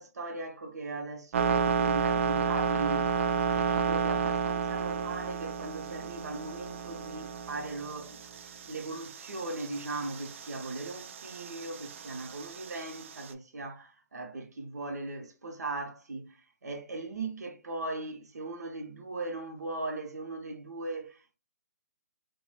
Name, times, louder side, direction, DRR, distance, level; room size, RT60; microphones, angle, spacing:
voice 1, 0.0-3.1 3.5-21.4, right 2 dB, 70° right, 0.8 m, -39 dB
sound 1, 1.3-13.3, right 6 dB, 45° right, 0.4 m, -32 dB
2.9 x 2.2 x 2.3 m
figure-of-eight pair, 140°, 9 cm